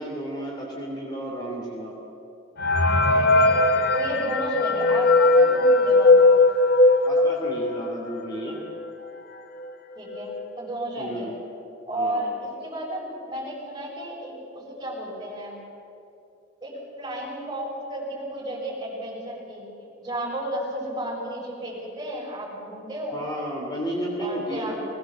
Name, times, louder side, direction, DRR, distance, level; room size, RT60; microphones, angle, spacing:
voice 1, 0.0-1.9 7.0-8.6 11.0-11.3 11.9-12.2 23.1-24.7, equal, 20° left, -2 dB, 3.0 m, -32 dB
sound 1, 2.6-8.0 8.5-8.6 8.8-8.9 9.6-9.7 10.1-10.4, left 2 dB, 50° left, 1.0 m, -19 dB
voice 2, 3.1-6.3 10.0-11.3 11.9-15.6 16.6-19.6 20.0-23.2 24.2-24.7, right 1 dB, 20° right, -5 dB, 7.0 m, -33 dB
21.0 x 18.5 x 7.6 m, 2.6 s
head